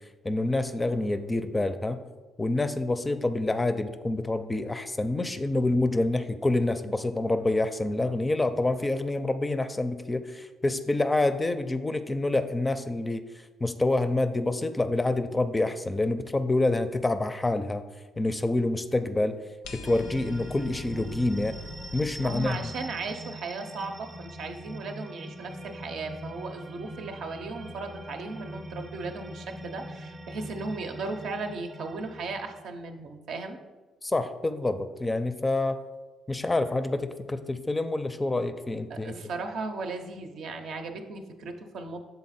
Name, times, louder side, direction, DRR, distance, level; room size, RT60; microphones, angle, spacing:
voice 1, 0.2-2.0 2.4-13.2 13.6-17.8 18.2-19.4 19.7-21.6 21.9-22.7 34.0-35.8 36.3-39.1, left 2 dB, 20° left, 10 dB, 0.4 m, -27 dB
sound 1, 19.6-22.5, left 4 dB, 85° left, 0.6 m, -44 dB
sound 2, 19.8-32.6, right 1 dB, 30° right, 0.6 m, -42 dB
voice 2, 22.2-33.6 38.9-42.0, right 3 dB, 75° right, 5 dB, 0.6 m, -36 dB
6.4 x 4.0 x 4.1 m, 1.3 s
cardioid pair, 80°, 0 cm